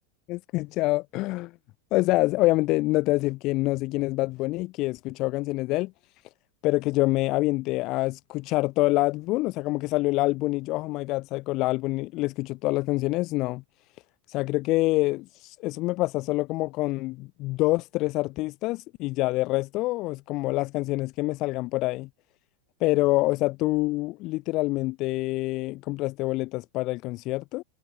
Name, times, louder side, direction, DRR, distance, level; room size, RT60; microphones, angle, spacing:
voice 1, 0.3-1.5 1.9-5.9 6.6-13.6 14.3-22.1 22.8-27.6, left 20 dB, 40° left, 1.8 m, -26 dB
figure-of-eight pair, 90°, 0 cm